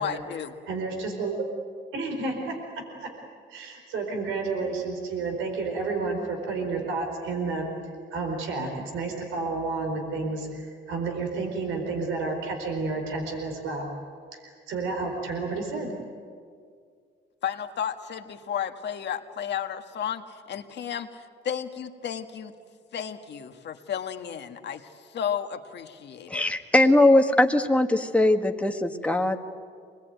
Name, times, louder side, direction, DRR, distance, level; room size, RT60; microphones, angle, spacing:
voice 1, 0.0-0.5 17.4-20.2 20.5-22.5 22.9-24.9 25.1-26.4, left 8 dB, 60° left, 1.7 m, -33 dB
voice 2, 0.7-1.4 1.9-3.1 3.5-7.7 8.1-13.9 14.3-15.9, right 3 dB, 90° right, 4.5 m, -31 dB
voice 3, 26.3-29.4, left 1 dB, 5° left, 1.7 m, -20 dB
25.5 x 20.5 x 9.3 m
cardioid pair, 90°, 20 cm